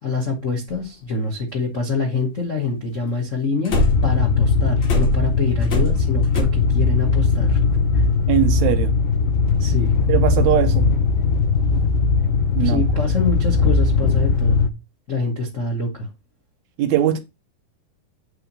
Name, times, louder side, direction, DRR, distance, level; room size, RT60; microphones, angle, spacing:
voice 1, 0.0-7.6 7.9-8.0 9.6-9.9 12.6-14.6 15.1-16.1, left 3 dB, 65° left, 0.7 m, -25 dB
sound 1, 0.7-0.8 3.7-4.2 4.8-6.4, equal, 50° left, 3.1 m, -22 dB
sound 2, 3.8-14.7, left 4 dB, 85° left, 2.7 m, -19 dB
voice 2, 8.3-8.9 10.1-10.9 12.5-12.8 16.8-17.2, right 10 dB, 75° right, 1.7 m, -20 dB
8.2 x 3.7 x 6.1 m
omnidirectional pair, 4.3 m